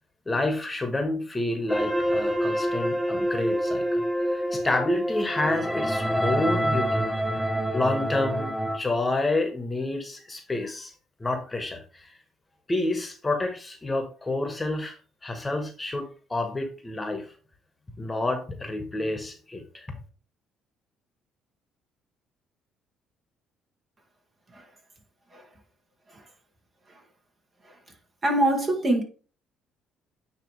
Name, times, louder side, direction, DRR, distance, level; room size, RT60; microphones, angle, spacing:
voice 1, 0.2-7.0 7.3-7.4 7.7-10.9 11.2-12.1 12.7-17.3 18.0-19.9, left 2 dB, 20° left, 1.5 m, -29 dB
sound 1, 1.7-8.8, equal, 5° right, 0.8 m, -27 dB
voice 2, 28.2-29.0, right 1 dB, 35° right, 2.1 m, -23 dB
9.2 x 3.3 x 3.4 m
supercardioid pair, 65°, 0 cm